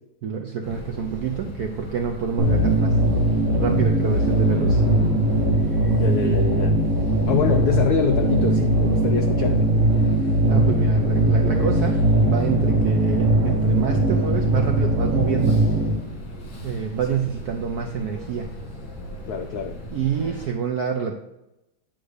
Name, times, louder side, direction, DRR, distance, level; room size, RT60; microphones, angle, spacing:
voice 1, 0.2-3.0 3.5-4.8 10.5-15.6 16.6-18.5 19.9-21.2, right 7 dB, 75° right, 4 dB, 0.8 m, -27 dB
sound 1, 0.6-20.5, equal, 60° left, 2.8 m, -37 dB
sound 2, 2.4-15.9, right 1 dB, 35° right, 1.7 m, -20 dB
voice 2, 6.0-6.8 7.3-9.7 17.1-17.2 19.3-19.8, left 6 dB, 80° left, 5 dB, 0.8 m, -25 dB
9.0 x 3.9 x 6.4 m, 0.92 s
omnidirectional pair, 2.4 m